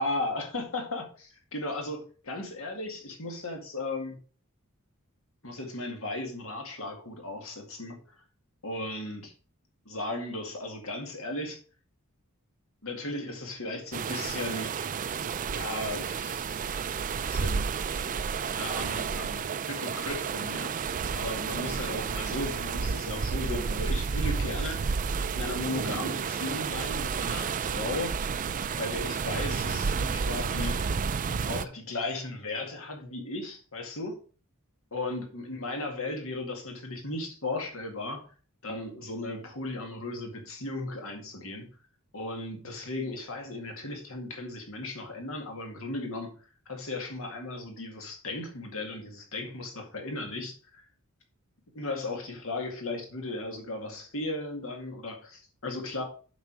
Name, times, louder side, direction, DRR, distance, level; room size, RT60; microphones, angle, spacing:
voice 1, 0.0-4.2 5.4-8.0 8.6-9.3 9.9-11.6 12.8-14.7 15.5-16.6 17.3-17.8 18.5-20.7 21.1-25.0 25.4-28.3 28.6-30.8 31.5-34.2 34.9-38.2 38.6-41.7 42.1-46.3 46.7-50.8 51.7-56.0, left 2 dB, 65° left, 2.2 m, -36 dB
sound 1, 13.9-31.6, right 5 dB, 35° right, 0.4 m, -31 dB
7.3 x 5.7 x 4.7 m
head